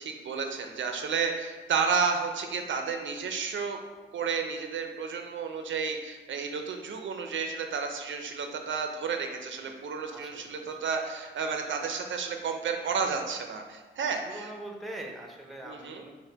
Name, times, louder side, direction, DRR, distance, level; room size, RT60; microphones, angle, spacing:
voice 1, 0.0-3.8 4.1-14.5 15.6-16.1, right 5 dB, 80° right, 5 dB, 0.5 m, -31 dB
voice 2, 10.1-10.8 14.2-16.2, right 1 dB, ahead, 1 dB, 0.7 m, -43 dB
5.3 x 2.1 x 4.5 m, 1.3 s
cardioid pair, 85°, 20 cm